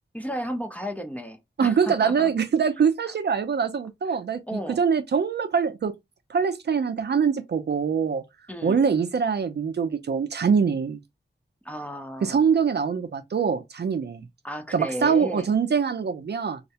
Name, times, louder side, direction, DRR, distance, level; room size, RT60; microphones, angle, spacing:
voice 1, 0.1-2.3 3.1-3.2 4.5-4.8 8.5-8.9 11.6-12.4 14.4-15.5, equal, 5° left, 0.4 m, -33 dB
voice 2, 1.6-5.9 6.3-8.2 8.6-11.0 12.2-14.3 14.7-16.6, right 6 dB, 60° right, 0.4 m, -24 dB
2.3 x 2.0 x 2.7 m
wide cardioid pair, 90°, 20 cm